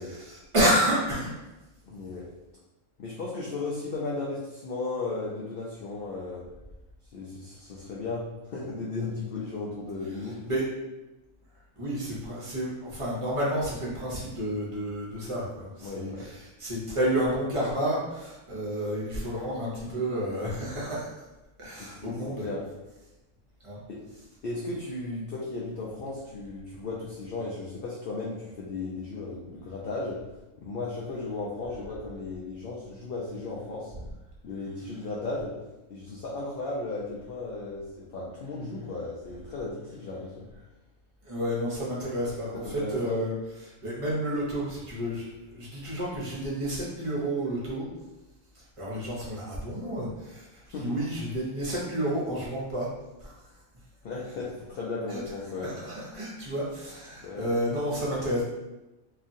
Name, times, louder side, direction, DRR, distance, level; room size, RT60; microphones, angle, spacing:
voice 1, 0.3-1.3 10.4-10.6 11.8-21.1 21.6-22.5 23.6-23.8 41.2-43.3 43.6-47.9 48.8-52.9 53.2-53.3 55.1-55.2 55.6-58.4, equal, 35° right, -6 dB, 0.6 m, -30 dB
voice 2, 1.8-2.3 3.0-6.5 7.1-10.4 15.8-16.3 21.8-22.1 22.4-22.6 23.9-24.0 24.4-30.2 30.6-33.9 34.4-35.5 35.9-40.5 42.5-43.2 50.7-50.9 54.0-55.7 57.2-57.5, left 3 dB, 90° left, -5 dB, 0.5 m, -35 dB
2.8 x 2.4 x 2.6 m, 1.0 s
omnidirectional pair, 1.6 m